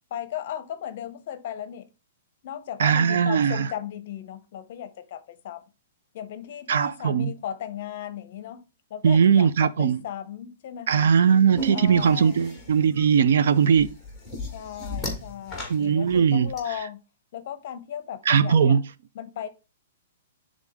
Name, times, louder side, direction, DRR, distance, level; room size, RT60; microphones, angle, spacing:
voice 1, 0.1-1.9 2.4-5.6 6.1-8.6 8.9-11.1 11.7-12.4 14.5-17.0 17.3-18.8 19.1-19.5, left 10 dB, 40° left, 0.7 m, -36 dB
voice 2, 2.8-3.7 6.7-7.3 9.0-10.0 10.9-13.9 15.7-16.5 18.3-18.8, right 7 dB, 60° right, 0.4 m, -20 dB
sound 1, 11.6-16.6, left 1 dB, ahead, 1.3 m, -36 dB
9.6 x 3.7 x 3.6 m
hypercardioid pair, 175°, 0 cm